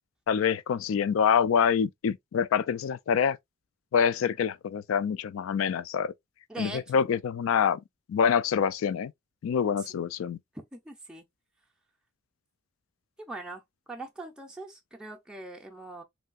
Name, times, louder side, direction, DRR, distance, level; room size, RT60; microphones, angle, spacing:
voice 1, 0.3-3.4 3.9-6.1 6.6-7.8 8.1-9.1 9.4-10.4, left 7 dB, 85° left, 0.3 m, -26 dB
voice 2, 6.5-7.0 9.7-10.0 10.5-11.2 13.2-13.6 13.9-16.0, right 2 dB, 5° right, 0.4 m, -42 dB
3.2 x 2.7 x 2.3 m
head